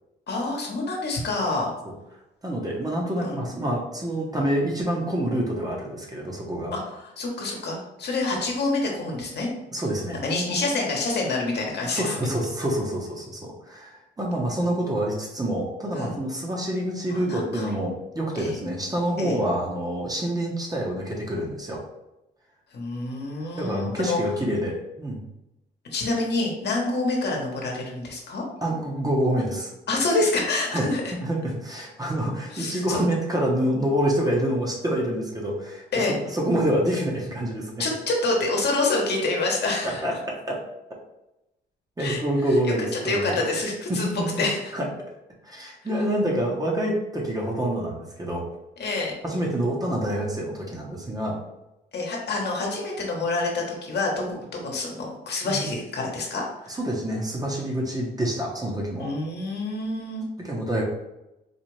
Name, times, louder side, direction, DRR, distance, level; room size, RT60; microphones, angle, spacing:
voice 1, 0.3-1.7 3.2-3.4 6.7-9.5 10.1-12.1 15.9-16.2 17.1-17.7 18.3-18.5 19.2-19.4 22.7-24.2 25.9-28.4 29.9-31.0 32.5-33.0 35.9-36.1 37.8-40.0 42.0-42.2 42.6-42.7 43.0-44.1 44.4-44.7 48.8-49.1 51.9-56.8 59.0-60.2, left 2 dB, 60° left, -1 dB, 1.1 m, -27 dB
voice 2, 2.4-6.7 9.7-10.2 11.9-21.8 23.6-25.2 28.6-29.7 30.7-30.8 31.1-36.1 36.3-37.9 39.8-40.6 42.0-43.3 43.9-44.3 44.7-44.9 45.4-48.4 49.2-51.4 55.4-55.6 56.7-59.1 60.4-60.8, right 1 dB, 20° right, -2 dB, 0.9 m, -27 dB
4.2 x 2.5 x 3.2 m, 0.93 s
cardioid pair, 90°, 20 cm